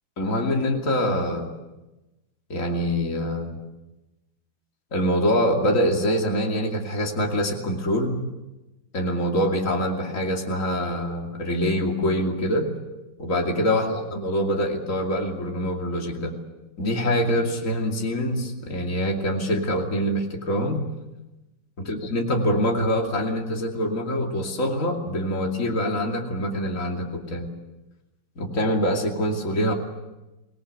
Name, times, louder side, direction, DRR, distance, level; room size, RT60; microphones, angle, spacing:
voice 1, 0.2-1.5 2.5-3.6 4.9-8.2 8.9-12.7 13.2-16.3 16.8-20.8 21.9-27.5 28.4-29.7, equal, 40° left, 1 dB, 3.0 m, -24 dB
25.0 x 18.5 x 8.2 m, 1.0 s
omnidirectional pair, 2.1 m